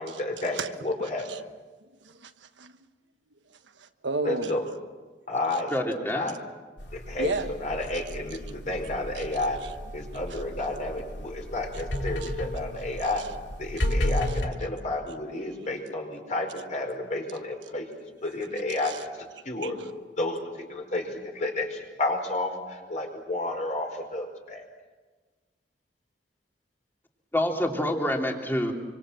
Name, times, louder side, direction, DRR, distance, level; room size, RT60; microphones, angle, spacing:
voice 1, 0.0-1.3 4.2-4.6 5.3-6.4 6.9-9.6 9.9-13.2 13.6-17.9 18.2-19.8 20.2-24.6, left 2 dB, 40° left, 2 dB, 5.0 m, -31 dB
voice 2, 1.0-1.4 2.0-2.7 3.8-4.6 7.2-7.5 9.1-9.3 9.6-9.7 10.3-10.4 12.2-12.4 13.2-13.3 13.8-14.0 14.3-14.4 16.2-16.3 18.8-19.0 19.6-19.9, right 3 dB, 85° right, 8 dB, 1.3 m, -34 dB
voice 3, 5.7-6.3 27.3-28.7, left 1 dB, 10° left, 1 dB, 2.8 m, -27 dB
sound 1, 6.8-14.5, left 1 dB, 70° left, 2.8 m, -33 dB
26.5 x 25.5 x 7.6 m, 1.3 s
head